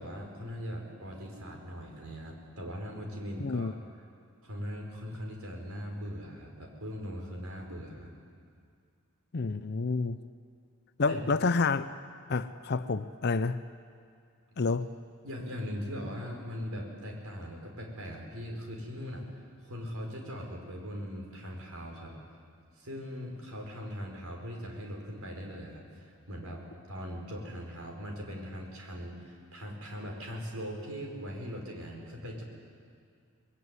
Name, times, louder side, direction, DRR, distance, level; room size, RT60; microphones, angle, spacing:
voice 1, 0.0-3.7 4.4-8.1 11.1-11.2 15.2-22.2 22.8-26.6 26.9-32.4, equal, 70° right, 1 dB, 5.0 m, -40 dB
voice 2, 3.4-3.7 9.3-10.2 11.0-11.9 12.3-13.6 14.6-14.9, left 4 dB, 45° left, 12 dB, 0.5 m, -29 dB
23.5 x 20.5 x 9.6 m, 2.3 s
head